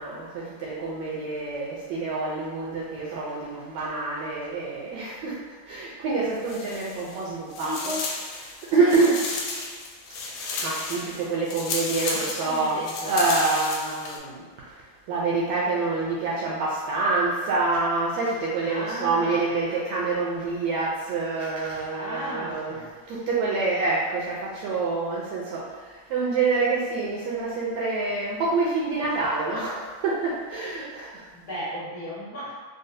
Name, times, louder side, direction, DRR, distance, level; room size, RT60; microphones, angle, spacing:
voice 1, 0.0-7.9 8.4-9.2 10.1-12.7 13.1-14.8 15.1-22.8 23.1-31.3, right 3 dB, 75° right, -6 dB, 1.6 m, -27 dB
sound 1, 6.4-7.2 7.5-14.2, left 3 dB, 80° left, 1.9 m, -33 dB
voice 2, 7.6-8.1 8.8-9.1 12.1-13.1 18.7-19.5 21.9-22.9 31.3-32.6, equal, 60° left, -12 dB, 1.3 m, -35 dB
4.9 x 2.0 x 2.6 m, 1.5 s
omnidirectional pair, 3.5 m